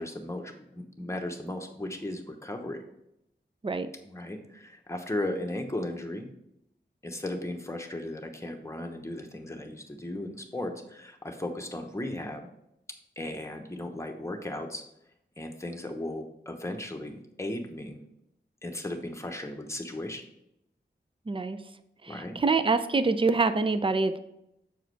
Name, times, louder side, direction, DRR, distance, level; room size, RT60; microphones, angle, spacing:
voice 1, 0.0-2.8 4.0-6.3 7.0-12.5 13.2-14.8 15.4-18.0 18.6-20.2 22.1-22.4, left 1 dB, 15° left, 3 dB, 1.0 m, -36 dB
voice 2, 21.3-21.6 22.0-24.2, right 3 dB, 30° right, 11 dB, 0.5 m, -25 dB
7.0 x 4.8 x 4.7 m, 0.82 s
wide cardioid pair, 85°, 19 cm